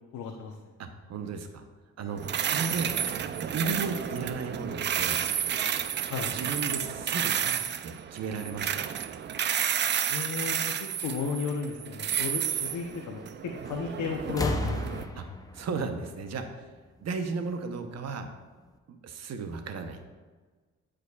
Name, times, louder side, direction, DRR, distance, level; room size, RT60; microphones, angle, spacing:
voice 1, 0.1-0.5 6.1-6.3 10.1-10.6 11.0-15.0, left 5 dB, 75° left, 2 dB, 0.8 m, -34 dB
voice 2, 0.8-1.6 2.0-3.0 3.5-5.2 6.3-7.5 7.8-8.8 15.1-15.3 15.5-16.7 17.0-18.3 18.9-20.0, right 4 dB, 60° right, 7 dB, 0.9 m, -35 dB
sound 1, 2.2-15.0, right 9 dB, 40° right, 0.4 m, -31 dB
sound 2, 13.6-13.9 14.2-17.0 18.1-18.2, left 1 dB, 10° left, 0.5 m, -35 dB
12.5 x 5.0 x 2.3 m, 1.4 s
cardioid pair, 90°, 30 cm